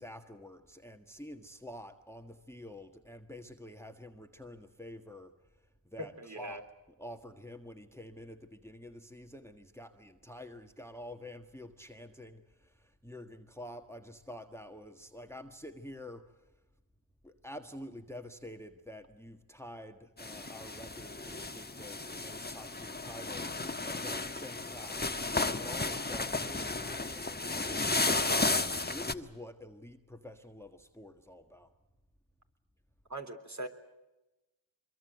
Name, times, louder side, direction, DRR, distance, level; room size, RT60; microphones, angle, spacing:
voice 1, 0.0-6.6 6.9-16.5 17.2-31.7, left 1 dB, 5° left, 6 dB, 1.6 m, -48 dB
voice 2, 6.0-6.6 33.1-33.7, right 1 dB, 40° right, 6 dB, 3.6 m, -41 dB
sound 1, 20.2-29.1, left 3 dB, 20° left, 1.3 m, -33 dB
25.0 x 23.0 x 7.8 m, 1.0 s
cardioid pair, 60°, 45 cm